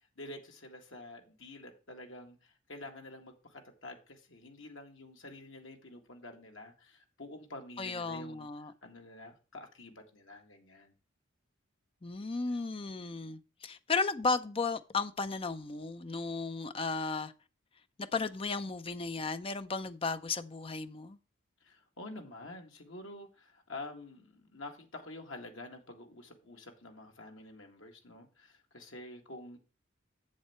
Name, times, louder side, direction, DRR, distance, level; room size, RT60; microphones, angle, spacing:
voice 1, 0.0-10.9 21.6-29.6, left 2 dB, 75° left, 1.9 m, -48 dB
voice 2, 7.8-8.7 12.0-17.3 18.1-21.2, left 4 dB, 25° left, 0.5 m, -34 dB
7.6 x 7.4 x 4.4 m
head